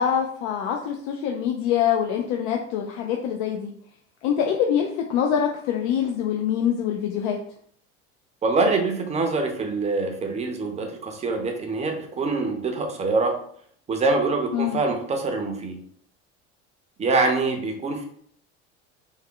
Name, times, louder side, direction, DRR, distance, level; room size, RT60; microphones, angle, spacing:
voice 1, 0.0-3.7 4.2-7.4 14.5-14.8, left 8 dB, 75° left, 2 dB, 0.5 m, -24 dB
voice 2, 8.4-13.3 13.9-15.8 17.0-18.0, right 3 dB, 20° right, 3 dB, 0.5 m, -24 dB
3.4 x 2.1 x 3.6 m, 0.62 s
cardioid pair, 140°, 31 cm